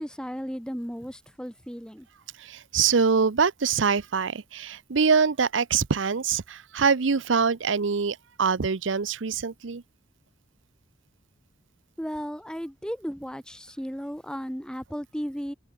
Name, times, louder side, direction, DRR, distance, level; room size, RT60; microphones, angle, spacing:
voice 1, 0.0-2.1 12.0-15.5, equal, 5° left, 7.5 m, -35 dB
voice 2, 2.4-9.8, right 5 dB, 70° right, 0.7 m, -24 dB
head